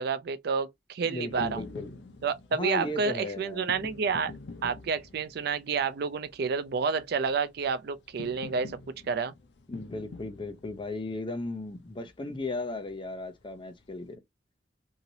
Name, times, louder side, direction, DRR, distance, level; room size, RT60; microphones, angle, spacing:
voice 1, 0.0-1.6 2.2-4.3 4.6-8.8 9.1-9.3, right 5 dB, 65° right, 0.4 m, -29 dB
voice 2, 1.0-1.9 2.5-3.7 9.7-14.2, left 2 dB, 30° left, 0.6 m, -36 dB
sound 1, 1.3-14.2, left 3 dB, 75° left, 0.6 m, -48 dB
2.9 x 2.8 x 2.6 m
head